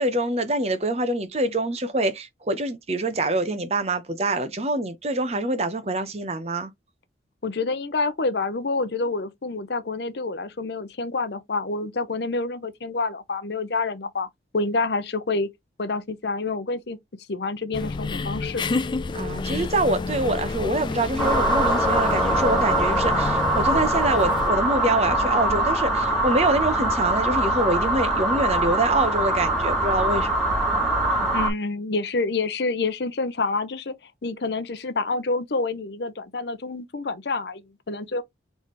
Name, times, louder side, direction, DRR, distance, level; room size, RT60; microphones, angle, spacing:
voice 1, 0.0-6.7 19.1-30.3, right 2 dB, 35° right, 0.8 m, -25 dB
voice 2, 7.4-14.3 14.5-15.5 15.8-17.0 17.3-18.6 31.3-33.9 34.2-38.2, left 3 dB, 65° left, 0.7 m, -27 dB
sound 1, 17.7-24.5, left 3 dB, 25° left, 0.3 m, -29 dB
sound 2, 21.2-31.5, right 1 dB, ahead, 1.6 m, -23 dB
4.2 x 3.4 x 3.1 m
head